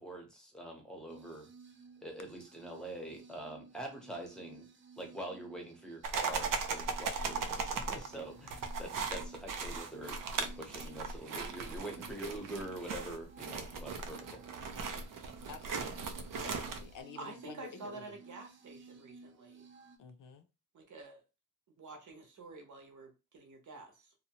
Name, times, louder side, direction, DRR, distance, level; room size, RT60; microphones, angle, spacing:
voice 1, 0.0-1.5 2.0-4.7 5.0-14.4, right 1 dB, ahead, 0.7 m, -45 dB
sound 1, 1.1-20.0, right 4 dB, 40° right, 0.5 m, -56 dB
sound 2, 6.0-17.0, right 5 dB, 90° right, 0.5 m, -38 dB
voice 2, 15.5-16.1 16.4-18.2 20.0-20.5, left 6 dB, 75° left, 0.5 m, -50 dB
voice 3, 17.2-19.7 20.7-21.2 21.8-24.1, right 3 dB, 65° right, 0.8 m, -49 dB
2.7 x 2.1 x 2.8 m
wide cardioid pair, 170°, 32 cm